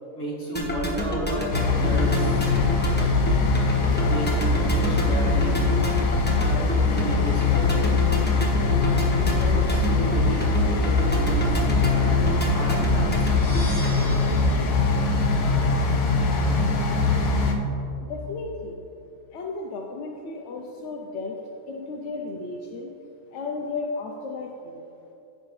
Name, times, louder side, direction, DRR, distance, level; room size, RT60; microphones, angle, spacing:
voice 1, 0.2-2.5 4.0-5.9 6.2-8.3 9.1-13.3, right 1 dB, 45° left, -6 dB, 2.4 m, -33 dB
sound 1, 0.5-14.3, equal, 10° left, 0.9 m, -29 dB
sound 2, 1.5-17.5, left 3 dB, 85° left, 1.3 m, -22 dB
sound 3, 13.1-16.0, equal, 60° right, 2.3 m, -40 dB
voice 2, 18.1-18.8 19.3-21.4 21.7-22.9 23.3-24.8, left 3 dB, 60° left, 0 dB, 0.8 m, -34 dB
15.0 x 5.4 x 3.2 m, 2.8 s
omnidirectional pair, 1.6 m